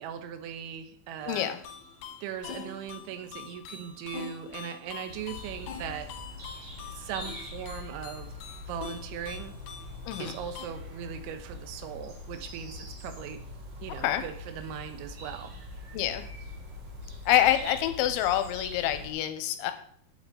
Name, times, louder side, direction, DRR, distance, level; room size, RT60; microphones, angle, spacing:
voice 1, 0.0-1.5 2.2-6.1 6.9-8.3 8.6-9.6 10.2-13.4 13.8-15.6, right 9 dB, 80° right, 8 dB, 3.2 m, -39 dB
sound 1, 1.2-10.7, left 8 dB, 70° left, 2.3 m, -45 dB
voice 2, 1.3-1.6 10.1-10.4 14.0-14.2 15.9-16.2 17.3-19.7, left 12 dB, 85° left, 9 dB, 3.0 m, -26 dB
sound 2, 5.1-19.1, left 2 dB, 50° right, 3.8 m, -43 dB
9.1 x 8.9 x 3.8 m, 0.63 s
omnidirectional pair, 5.4 m